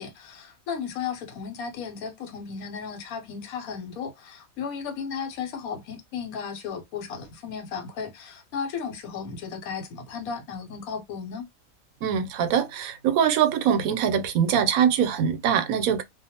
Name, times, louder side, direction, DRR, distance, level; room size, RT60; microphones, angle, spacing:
voice 1, 0.0-11.5, left 6 dB, 90° left, 1.2 m, -35 dB
voice 2, 12.0-16.0, right 8 dB, 85° right, 1.0 m, -23 dB
2.5 x 2.1 x 2.7 m
omnidirectional pair, 1.4 m